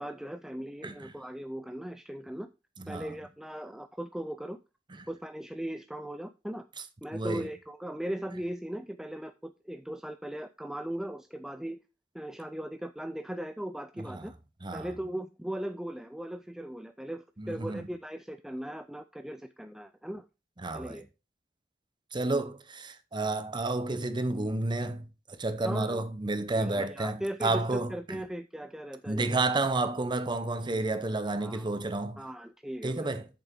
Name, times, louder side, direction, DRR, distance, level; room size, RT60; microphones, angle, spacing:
voice 1, 0.0-2.5 2.9-4.6 5.1-6.7 7.0-11.8 12.1-14.3 14.7-20.3 20.7-21.1 25.6-26.0 26.5-29.5 31.4-31.6 32.2-33.1, right 1 dB, 5° right, 0.3 m, -38 dB
voice 2, 2.8-3.1 5.0-5.1 7.1-7.5 14.0-14.3 14.6-14.9 17.4-17.9 20.6-21.0 22.1-28.2 29.1-32.2 32.8-33.3, right 2 dB, 25° right, 0.8 m, -31 dB
8.1 x 7.0 x 3.7 m
head